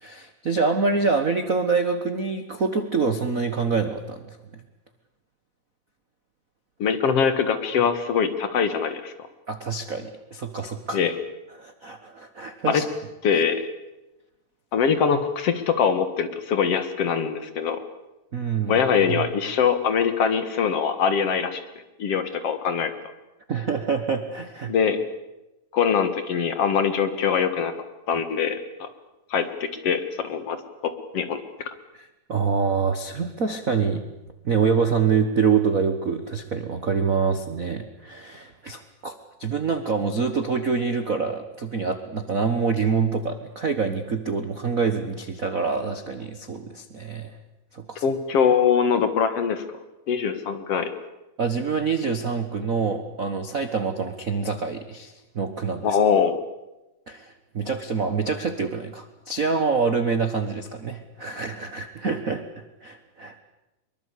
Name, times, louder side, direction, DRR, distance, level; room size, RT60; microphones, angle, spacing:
voice 1, 0.0-4.4 9.5-11.0 11.6-12.8 18.3-18.8 19.1-19.3 23.5-24.7 32.0-34.0 34.4-39.1 39.4-47.4 47.7-48.0 51.4-56.0 57.1-63.3, right 5 dB, 75° right, 8 dB, 0.7 m, -26 dB
voice 2, 6.8-9.1 10.9-11.1 12.7-12.8 13.2-13.6 14.7-17.8 18.7-21.6 22.0-22.9 24.7-25.0 25.7-27.7 28.1-28.9 29.3-30.6 31.1-31.4 48.0-49.8 50.1-50.9 55.8-56.4, left 6 dB, 55° left, 10 dB, 2.3 m, -23 dB
24.0 x 23.0 x 8.4 m, 0.99 s
omnidirectional pair, 3.7 m